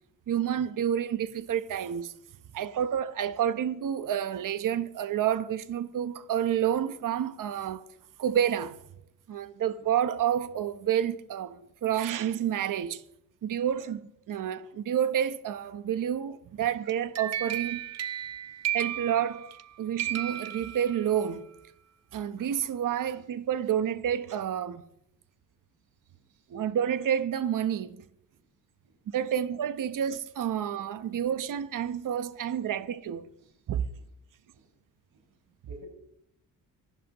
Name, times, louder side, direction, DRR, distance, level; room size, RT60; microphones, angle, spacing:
voice 1, 0.3-2.1 2.5-7.8 8.2-8.8 9.3-13.0 13.4-17.8 18.7-19.5 19.8-21.5 22.1-24.8 26.5-28.0 29.1-33.3 33.7-33.9, right 9 dB, 65° right, 0.9 m, -29 dB
sound 1, 16.9-19.7 20.0-21.3, right 11 dB, 45° right, 0.6 m, -34 dB
voice 2, 26.0-26.5 28.3-28.4 28.8-29.0 33.4-33.5 34.5-34.7 35.1-35.3 35.6-35.9, left 1 dB, 85° right, 6.0 m, -53 dB
25.0 x 12.0 x 3.0 m
cardioid pair, 95°, 35 cm